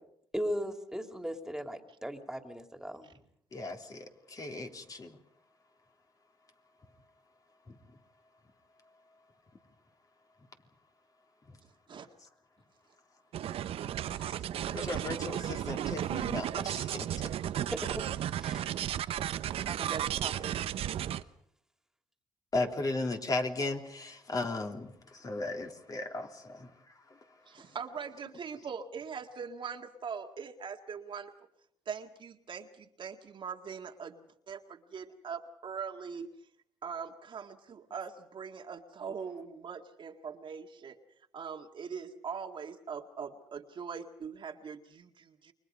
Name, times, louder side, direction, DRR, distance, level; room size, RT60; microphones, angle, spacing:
voice 1, 0.3-3.1 17.8-17.9 18.4-18.6, equal, 5° right, 5 dB, 3.2 m, -37 dB
voice 2, 3.5-5.2 11.5-11.6 14.7-17.3 22.5-26.7, left 2 dB, 35° left, 3 dB, 3.4 m, -36 dB
sound 1, 13.3-21.2, right 11 dB, 70° right, 0.9 m, -34 dB
voice 3, 14.1-15.1 19.6-20.8 27.5-31.3 31.9-36.3 36.8-41.0 41.3-45.5, right 6 dB, 50° right, 4 dB, 1.9 m, -42 dB
29.0 x 23.0 x 5.4 m, 0.70 s
cardioid pair, 85°, 10 cm